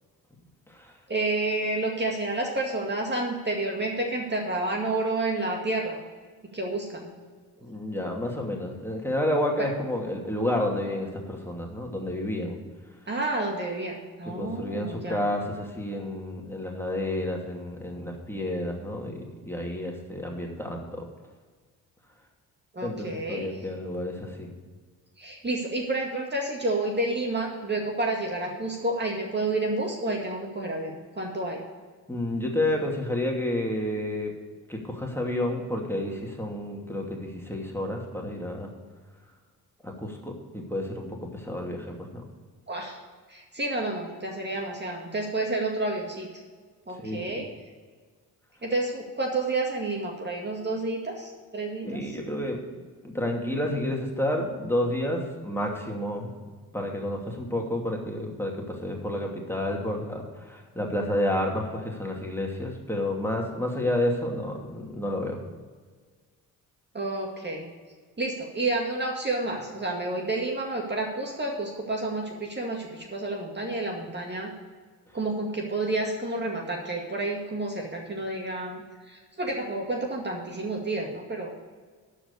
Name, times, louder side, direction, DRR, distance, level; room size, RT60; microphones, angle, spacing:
voice 1, 1.1-6.0 6.5-7.1 9.6-9.7 13.1-15.2 22.7-23.5 25.2-31.6 42.7-43.0 43.3-46.3 46.9-47.5 48.6-52.2 66.9-67.7 68.2-74.5 75.1-81.5, right 2 dB, 25° right, 0 dB, 2.1 m, -30 dB
voice 2, 7.6-12.6 14.3-21.0 22.8-24.5 32.1-34.3 34.7-38.7 39.8-42.2 47.0-47.4 51.8-52.6 53.0-56.3 56.7-65.4, left 1 dB, 5° left, 0 dB, 2.6 m, -30 dB
12.0 x 5.0 x 8.3 m, 1.5 s
supercardioid pair, 55°, 39 cm